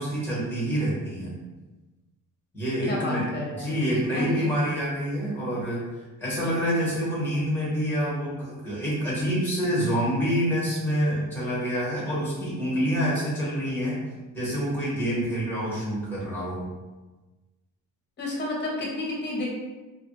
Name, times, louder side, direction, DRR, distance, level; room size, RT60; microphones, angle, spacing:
voice 1, 0.0-1.4 2.5-3.2 3.5-5.8 6.2-14.0 14.3-16.7, equal, 5° left, -7 dB, 1.3 m, -27 dB
voice 2, 2.9-4.5 18.2-19.5, left 2 dB, 35° left, -3 dB, 0.8 m, -31 dB
2.7 x 2.5 x 2.7 m, 1.2 s
cardioid pair, 145°, 33 cm